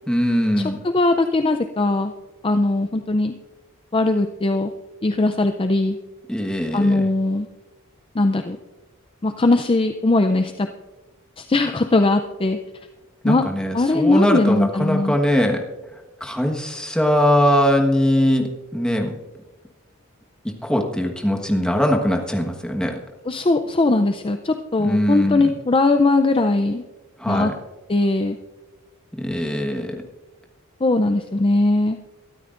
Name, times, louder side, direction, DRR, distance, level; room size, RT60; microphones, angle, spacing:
voice 1, 0.1-0.8 6.3-7.1 13.2-15.6 16.2-19.1 20.6-23.0 24.8-25.5 27.2-27.5 29.1-30.0, equal, 5° left, 2 dB, 1.3 m, -21 dB
voice 2, 0.9-2.1 2.4-3.3 3.9-4.7 5.0-6.0 6.7-7.5 8.1-8.6 9.2-10.7 11.4-12.6 13.2-13.4 13.7-15.1 23.3-26.8 27.3-27.5 27.9-28.4 30.8-32.0, left 2 dB, 25° left, 7 dB, 0.5 m, -19 dB
22.5 x 13.0 x 2.5 m, 1.1 s
head